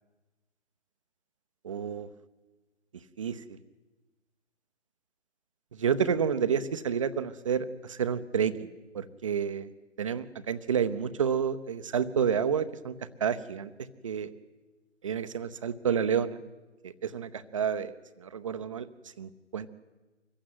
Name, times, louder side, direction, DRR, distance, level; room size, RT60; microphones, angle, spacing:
voice 1, 1.6-2.1 3.2-3.4 5.8-8.7 8.9-9.7 10.0-12.9 13.2-13.7 14.0-14.3 15.0-16.4 16.8-17.9 18.2-18.9 19.2-19.7, right 7 dB, 25° right, 13 dB, 0.8 m, -29 dB
25.5 x 15.5 x 9.4 m, 1.2 s
figure-of-eight pair, 145°, 36 cm